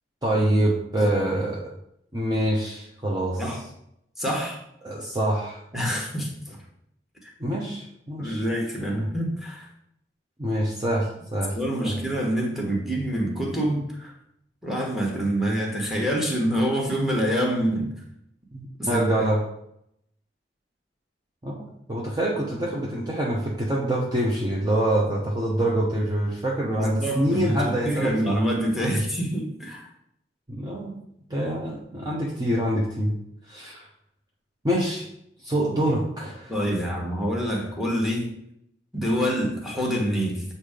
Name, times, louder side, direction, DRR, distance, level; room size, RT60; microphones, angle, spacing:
voice 1, 0.2-1.7 2.1-3.4 4.8-5.6 7.4-8.4 8.9-9.1 10.4-11.5 11.8-11.9 18.5-19.4 21.4-21.5 21.9-28.4 30.5-31.0 31.3-33.1 33.5-33.8 34.6-35.1 35.4-36.5, right 1 dB, 25° right, -4 dB, 0.8 m, -25 dB
voice 2, 1.0-1.4 3.4-3.6 4.2-4.6 5.7-6.6 7.2-7.3 8.2-9.7 11.5-14.1 14.6-17.9 18.8-19.0 26.8-27.6 27.8-29.9 36.5-38.3 38.9-40.4, equal, ahead, -1 dB, 1.3 m, -26 dB
8.0 x 2.8 x 5.0 m, 0.75 s
head